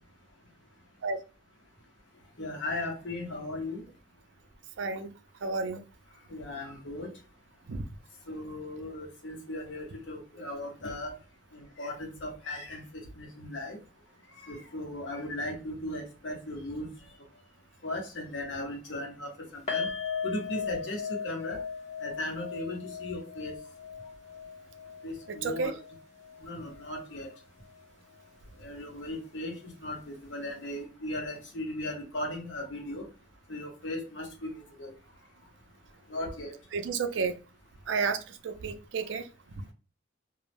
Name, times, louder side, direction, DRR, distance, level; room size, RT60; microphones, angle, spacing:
voice 1, 2.4-3.8 6.3-7.1 8.3-11.1 11.5-13.8 14.3-16.9 17.8-19.9 20.2-21.6 22.0-23.6 25.0-25.8 26.4-27.3 28.6-33.1 33.5-34.9 36.1-36.6, left 1 dB, 85° left, 2 dB, 0.9 m, -37 dB
voice 2, 4.8-5.1 5.4-5.8 7.7-7.8 25.3-25.7 36.7-37.4 37.9-39.3, right 4 dB, 90° right, 9 dB, 0.4 m, -31 dB
sound 1, 19.7-26.9 27.1-27.3 27.7-27.8, left 6 dB, 40° left, 0.6 m, -38 dB
2.3 x 2.0 x 3.2 m, 0.33 s
head